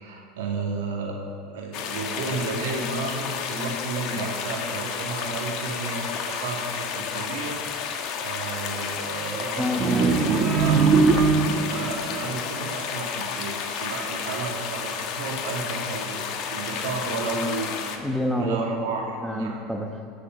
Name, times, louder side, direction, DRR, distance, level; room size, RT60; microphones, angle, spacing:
voice 1, 0.0-7.6 8.2-17.8 18.4-19.6, right 4 dB, 80° right, 0 dB, 2.4 m, -32 dB
sound 1, 1.7-18.0, left 7 dB, 60° left, 1.4 m, -31 dB
voice 2, 9.5-10.2 18.0-18.7 19.2-20.0, equal, ahead, 3 dB, 1.3 m, -27 dB
sound 2, 9.8-11.8, right 4 dB, 40° right, 1.5 m, -20 dB
18.5 x 6.8 x 6.6 m, 2.4 s
hypercardioid pair, 95°, 0 cm